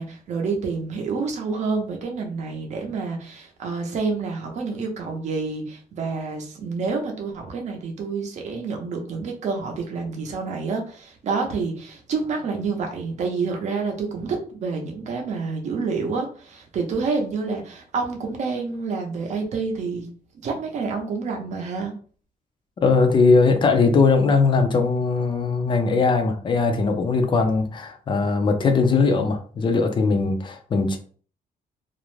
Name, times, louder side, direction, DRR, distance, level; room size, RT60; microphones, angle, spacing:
voice 1, 0.0-20.1 20.4-21.9, right 4 dB, 50° right, 2 dB, 0.6 m, -28 dB
voice 2, 22.8-31.0, left 4 dB, 30° left, 6 dB, 0.4 m, -20 dB
2.4 x 2.0 x 3.1 m, 0.43 s
cardioid pair, 155°, 16 cm